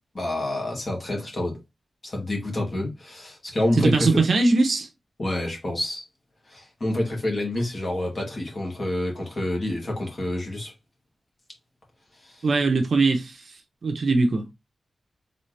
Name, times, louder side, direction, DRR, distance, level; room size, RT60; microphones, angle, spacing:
voice 1, 0.2-1.6 2.0-4.2 5.2-6.0 6.5-10.7 12.2-12.4, left 1 dB, 35° left, 1.9 m, -28 dB
voice 2, 3.8-4.9 12.4-13.4 13.8-14.5, right 3 dB, 55° right, 0.8 m, -21 dB
4.1 x 3.4 x 3.3 m
wide cardioid pair, 170°, 0 cm